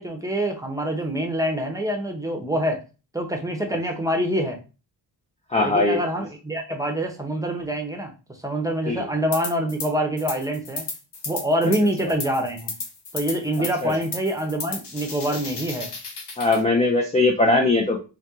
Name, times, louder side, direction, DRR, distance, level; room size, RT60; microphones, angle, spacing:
voice 1, 0.0-2.8 3.1-4.6 5.6-8.1 8.4-10.8 11.3-12.7 13.1-15.9, right 1 dB, 10° right, 3 dB, 0.8 m, -25 dB
voice 2, 5.5-6.0 8.9-9.1 13.8-13.9 16.4-18.0, left 2 dB, 15° left, 2 dB, 0.5 m, -20 dB
sound 1, 9.3-9.9 10.2-16.6, left 4 dB, 65° left, 1.1 m, -34 dB
4.3 x 2.3 x 3.6 m, 0.32 s
wide cardioid pair, 110°, 44 cm